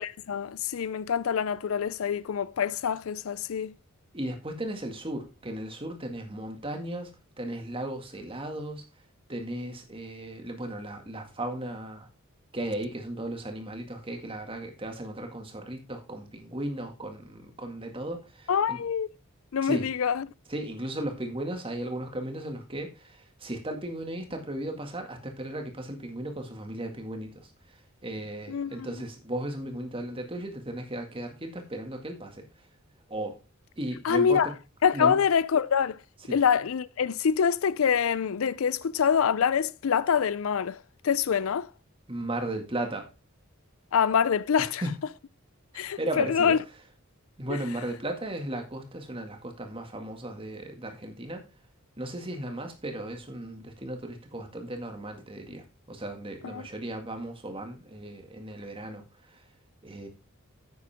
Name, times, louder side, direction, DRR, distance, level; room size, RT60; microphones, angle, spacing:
voice 1, 0.0-3.7 18.5-19.1 19.5-20.3 28.5-28.9 34.0-34.5 34.8-36.0 36.3-40.8 41.0-41.7 43.9-44.8 45.7-46.6 47.5-47.6 56.4-56.6, left 7 dB, 75° left, 0.4 m, -25 dB
voice 2, 4.1-7.1 7.4-8.8 9.3-12.1 12.5-18.8 19.6-19.9 20.5-32.5 33.1-33.4 33.8-34.5 34.9-35.2 36.3-36.4 42.1-43.1 44.8-44.9 45.7-46.6 47.4-51.4 52.0-59.4 59.8-60.1, right 1 dB, 25° right, 1.9 m, -36 dB
9.6 x 8.6 x 3.5 m
head